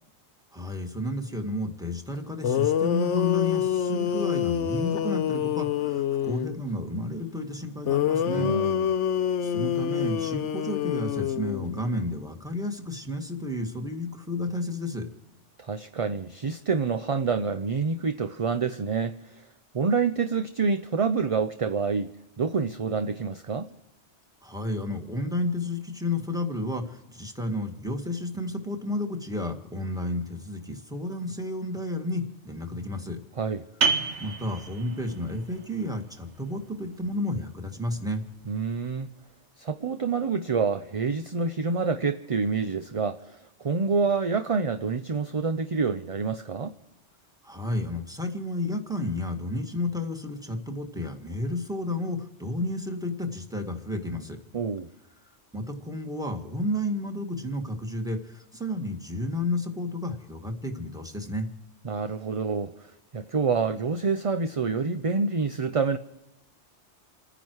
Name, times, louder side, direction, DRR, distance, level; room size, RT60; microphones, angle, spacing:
voice 1, 0.5-8.5 9.4-15.1 24.4-33.2 34.2-38.2 47.4-54.4 55.5-61.5, left 1 dB, 5° right, 1.9 m, -31 dB
sound 1, 2.1-2.2 2.4-6.6 7.9-11.9, left 9 dB, 80° left, 1.0 m, -26 dB
voice 2, 8.3-8.9 15.6-19.5 19.7-22.1 22.4-23.7 33.4-33.7 38.5-39.1 39.6-46.7 54.5-54.9 61.8-66.0, right 5 dB, 35° right, 0.6 m, -27 dB
sound 2, 33.8-39.2, right 4 dB, 75° right, 1.6 m, -33 dB
29.5 x 10.0 x 4.7 m
omnidirectional pair, 1.2 m